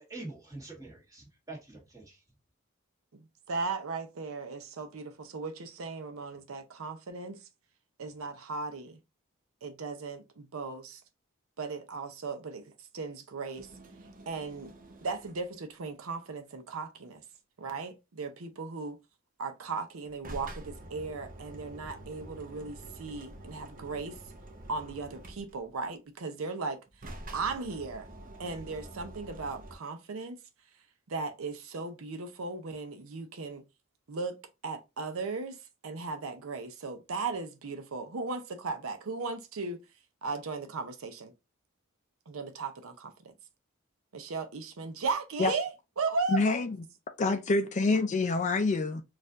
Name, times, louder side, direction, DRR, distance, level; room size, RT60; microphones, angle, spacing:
voice 1, 0.1-2.2, right 2 dB, 15° right, 1.4 m, -45 dB
voice 2, 3.1-7.4 8.0-9.0 9.6-11.0 11.6-13.7 14.3-14.7 15.0-17.2 17.6-19.0 19.4-24.2 24.7-26.8 27.3-28.1 28.4-30.4 31.1-33.6 34.1-39.8 40.2-41.3 42.3-43.3 44.1-46.4 47.3-47.4, right 4 dB, 85° right, 0.6 m, -37 dB
sound 1, 13.5-15.5 20.0-25.8 26.9-29.7, right 1 dB, 40° right, 0.7 m, -47 dB
voice 3, 46.3-46.8 47.2-49.0, left 3 dB, 35° left, 0.4 m, -26 dB
4.3 x 2.5 x 2.4 m
head